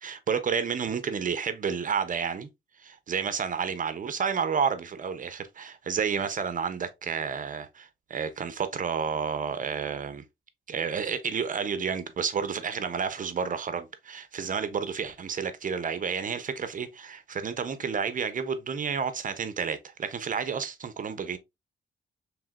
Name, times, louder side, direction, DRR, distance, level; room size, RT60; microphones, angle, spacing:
voice 1, 0.0-2.5 2.8-10.2 10.7-21.4, right 6 dB, 40° right, 0.5 m, -30 dB
5.0 x 3.2 x 2.3 m
wide cardioid pair, 170°, 20 cm